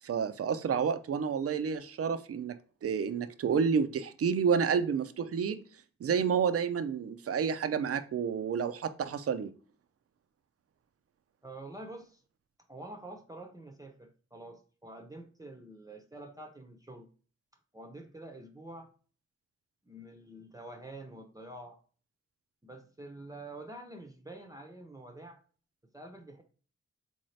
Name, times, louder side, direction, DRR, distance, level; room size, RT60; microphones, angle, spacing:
voice 1, 0.0-2.6 2.8-5.6 6.0-9.5, right 6 dB, 50° right, 0.5 m, -30 dB
voice 2, 11.4-12.2 12.7-17.1 17.7-18.9 19.9-21.8 22.6-25.4 25.9-26.4, right 1 dB, 10° right, 0.6 m, -47 dB
3.7 x 2.7 x 3.2 m
cardioid pair, 45°, 30 cm